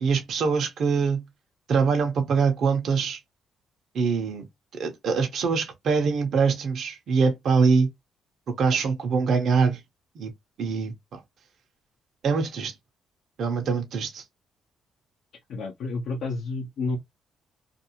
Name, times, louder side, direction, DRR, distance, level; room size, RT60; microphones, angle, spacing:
voice 1, 0.0-1.2 1.7-3.2 3.9-4.4 4.7-7.9 8.5-9.8 10.2-10.3 10.6-11.2 12.2-12.7 13.4-14.2, right 5 dB, 65° right, 0.7 m, -24 dB
voice 2, 15.5-17.0, left 3 dB, 70° left, 0.7 m, -30 dB
2.5 x 2.3 x 2.8 m
cardioid pair, 90°, 0 cm